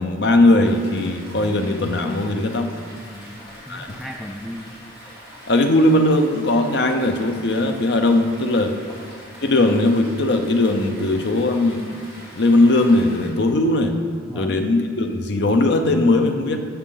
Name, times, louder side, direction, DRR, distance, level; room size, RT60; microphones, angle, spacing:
voice 1, 0.0-2.8 3.7-4.0 5.5-8.8 9.4-11.9 12.4-14.0 14.3-16.6, left 2 dB, 55° left, 5 dB, 0.7 m, -19 dB
sound 1, 0.6-13.3, equal, 25° left, 2.6 m, -43 dB
voice 2, 3.0-4.7 8.8-8.9 14.3-14.5, equal, ahead, 1 dB, 0.4 m, -36 dB
12.5 x 5.6 x 3.9 m, 2.1 s
head